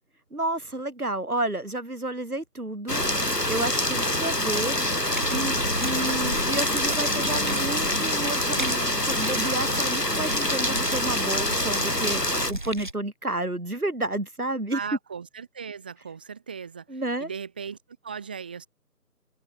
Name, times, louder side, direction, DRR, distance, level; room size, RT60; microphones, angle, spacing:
voice 1, 0.3-3.0 3.5-4.8 5.3-14.8 16.9-17.3, right 2 dB, 65° right, 5.0 m, -31 dB
Rain, 2.9-12.5, left 1 dB, 85° left, 7.1 m, -25 dB
sound 1, 5.1-12.9, right 1 dB, 30° right, 2.9 m, -37 dB
voice 2, 14.7-17.8 18.0-18.7, right 6 dB, 5° right, 3.9 m, -37 dB
figure-of-eight pair, 170°, 47 cm